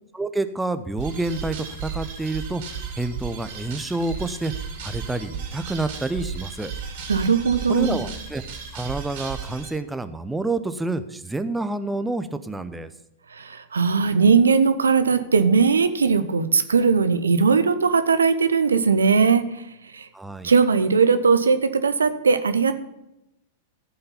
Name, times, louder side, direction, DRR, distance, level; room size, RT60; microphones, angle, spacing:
voice 1, 0.1-2.6 3.0-4.5 4.8-6.7 7.7-8.4 8.7-12.9 20.1-20.5, right 2 dB, 5° right, 11 dB, 0.7 m, -28 dB
sound 1, 1.0-9.7, right 6 dB, 50° right, 2.5 m, -34 dB
voice 2, 7.1-8.0 13.3-19.7 19.9-20.1 20.4-22.7, right 5 dB, 75° right, 10 dB, 0.7 m, -19 dB
14.5 x 5.6 x 5.7 m, 0.87 s
figure-of-eight pair, 95°, 0 cm